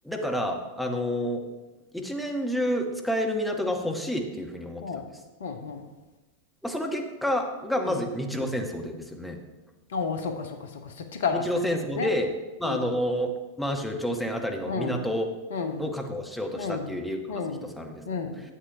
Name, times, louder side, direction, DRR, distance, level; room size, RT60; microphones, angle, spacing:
voice 1, 0.0-1.4 1.9-5.0 6.6-9.4 11.3-12.3 12.6-13.3 13.6-15.3 15.8-18.3, equal, ahead, 2 dB, 1.1 m, -29 dB
voice 2, 5.4-5.8 7.9-8.0 9.9-12.1 12.6-12.8 14.7-15.0 15.5-15.8 16.6-16.9 17.3-17.7 18.1-18.4, left 5 dB, 60° left, 6 dB, 1.0 m, -32 dB
11.0 x 8.0 x 2.7 m, 1.1 s
figure-of-eight pair, 90°, 0 cm